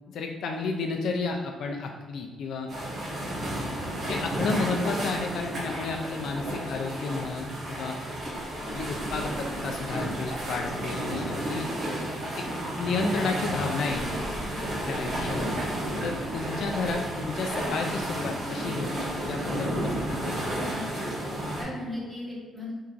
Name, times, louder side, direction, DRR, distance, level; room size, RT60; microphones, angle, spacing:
voice 1, 0.1-2.7 4.1-8.0 8.7-11.7 12.8-14.0 14.8-15.5 16.0-18.9 19.3-20.3, left 4 dB, 60° left, 2 dB, 0.3 m, -31 dB
sound 1, 2.7-21.6, right 1 dB, 45° right, 1.4 m, -32 dB
voice 2, 20.7-22.7, left 1 dB, 5° right, -8 dB, 1.3 m, -38 dB
4.5 x 3.5 x 2.5 m, 1.4 s
cardioid pair, 180°, 0 cm